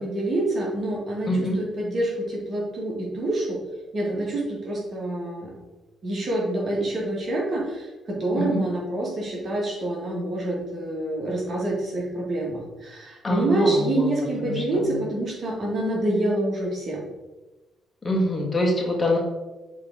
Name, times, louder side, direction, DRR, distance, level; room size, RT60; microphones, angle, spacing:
voice 1, 0.0-1.3 1.6-3.6 3.9-5.5 6.0-17.1, right 1 dB, 50° right, -3 dB, 1.9 m, -27 dB
voice 2, 1.3-1.6 8.3-8.6 13.2-14.1 14.4-15.0 18.0-19.2, left 1 dB, 25° left, -1 dB, 1.6 m, -25 dB
7.0 x 3.5 x 3.8 m, 1.1 s
cardioid pair, 90°, 0 cm